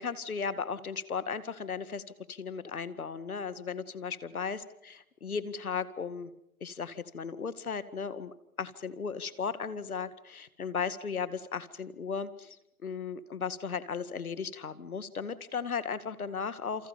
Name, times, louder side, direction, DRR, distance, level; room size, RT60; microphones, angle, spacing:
voice 1, 0.0-2.0 2.3-6.3 6.6-12.6 12.8-16.9, left 6 dB, 80° left, 14 dB, 2.1 m, -36 dB
29.5 x 28.5 x 5.2 m, 0.79 s
hypercardioid pair, 175°, 43 cm